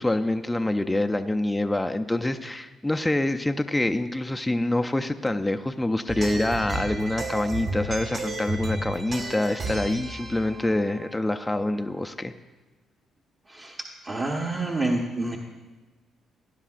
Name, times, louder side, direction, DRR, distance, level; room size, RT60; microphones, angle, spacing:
voice 1, 0.0-12.3, left 1 dB, 10° left, 6 dB, 0.4 m, -26 dB
sound 1, 6.1-11.9, right 2 dB, 50° right, 1.9 m, -33 dB
voice 2, 14.0-15.4, right 2 dB, 35° right, -3 dB, 1.2 m, -27 dB
17.0 x 10.5 x 2.5 m, 1.2 s
cardioid pair, 90°, 0 cm